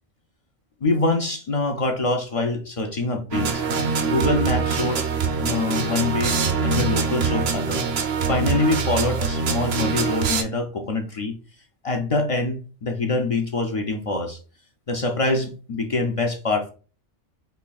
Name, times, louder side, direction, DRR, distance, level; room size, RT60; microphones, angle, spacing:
voice 1, 0.8-3.6 4.0-5.1 5.4-7.9 8.3-11.4 11.8-14.4 14.9-16.7, left 2 dB, 55° left, 0.4 m, -24 dB
sound 1, 3.3-10.4, right 5 dB, 65° right, 0.8 m, -24 dB
4.4 x 3.1 x 2.3 m
omnidirectional pair, 1.2 m